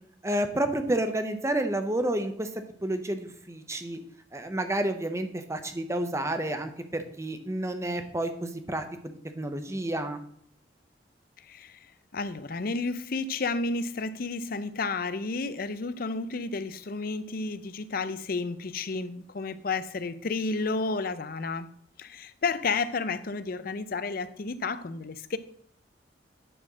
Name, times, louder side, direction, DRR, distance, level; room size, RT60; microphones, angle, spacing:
voice 1, 0.2-2.5 2.8-4.0 4.3-10.2, right 1 dB, 15° right, 0.8 m, -30 dB
voice 2, 11.4-11.8 12.1-21.7 22.0-25.4, left 3 dB, 55° left, 0.6 m, -31 dB
10.0 x 4.3 x 6.2 m
head